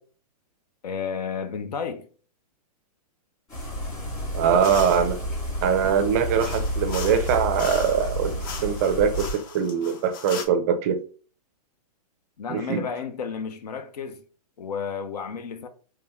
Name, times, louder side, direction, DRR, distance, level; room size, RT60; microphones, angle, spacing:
voice 1, 0.8-2.1 12.4-14.2 14.6-15.7, left 6 dB, 85° left, 0.7 m, -32 dB
sound 1, 3.5-9.3, equal, 15° left, 1.8 m, -31 dB
voice 2, 4.3-5.2 5.6-8.3 8.6-11.0 12.5-12.8, right 7 dB, 25° right, 0.4 m, -22 dB
sound 2, 4.6-5.1 6.4-10.5, left 5 dB, 35° left, 0.5 m, -38 dB
3.5 x 3.0 x 2.9 m
hypercardioid pair, 160°, 20 cm